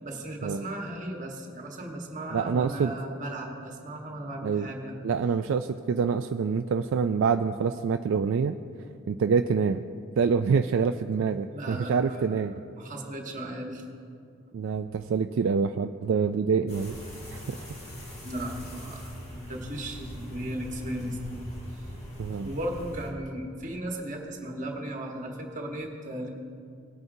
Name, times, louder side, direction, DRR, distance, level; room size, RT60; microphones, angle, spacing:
voice 1, 0.0-4.9 11.5-12.2 12.8-13.8 18.2-21.4 21.7-21.8 22.4-26.3, right 1 dB, 35° right, 1 dB, 1.4 m, -36 dB
voice 2, 2.3-2.9 4.4-4.7 5.0-8.5 9.1-9.8 10.2-12.5 14.5-17.0 17.3-17.7 22.2-22.5, right 5 dB, 70° right, 8 dB, 0.3 m, -26 dB
sound 1, 16.7-23.1, equal, 30° left, 1.8 m, -41 dB
19.0 x 9.3 x 2.7 m, 2.4 s
head